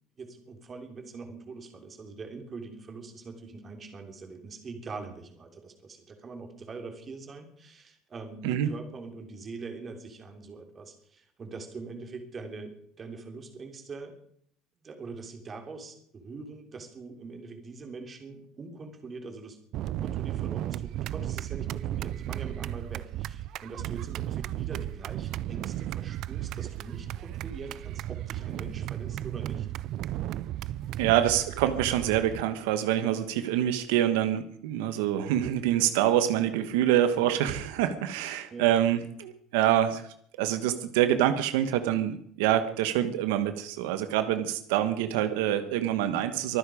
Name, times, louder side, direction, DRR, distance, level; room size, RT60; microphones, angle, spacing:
voice 1, 0.2-14.1 14.8-19.6 19.8-29.7 38.5-38.8, right 4 dB, 30° right, 5 dB, 3.2 m, -43 dB
sound 1, 19.7-32.4, right 13 dB, 55° right, 0.5 m, -34 dB
voice 2, 31.0-40.0 40.4-46.6, right 11 dB, 90° right, 10 dB, 1.2 m, -26 dB
24.0 x 10.0 x 5.1 m, 0.64 s
cardioid pair, 130°, 0 cm